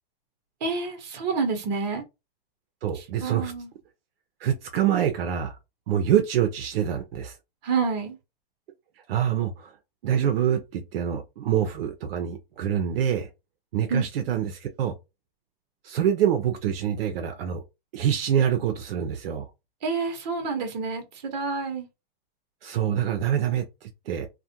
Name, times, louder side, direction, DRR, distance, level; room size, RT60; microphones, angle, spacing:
voice 1, 0.6-2.0 2.9-3.7 7.6-8.2 13.9-14.0 19.8-21.9, right 4 dB, 45° right, 0.9 m, -28 dB
voice 2, 2.8-3.5 4.4-5.6 5.9-7.4 9.1-9.7 10.0-13.3 13.7-14.9 15.8-17.6 17.9-19.5 22.6-24.3, right 9 dB, 75° right, 0.6 m, -25 dB
2.4 x 2.1 x 2.7 m
supercardioid pair, 170°, 30 cm